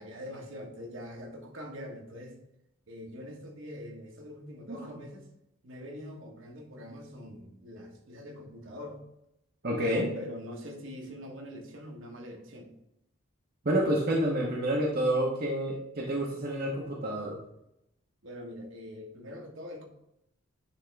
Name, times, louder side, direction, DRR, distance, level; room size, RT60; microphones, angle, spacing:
voice 1, 0.0-2.4 2.9-5.3 5.6-9.0 9.6-12.7 18.2-19.8, equal, 65° right, 2 dB, 1.2 m, -44 dB
voice 2, 9.6-10.1 13.6-17.4, right 1 dB, 45° right, -2 dB, 0.9 m, -28 dB
10.0 x 3.6 x 3.4 m, 0.82 s
head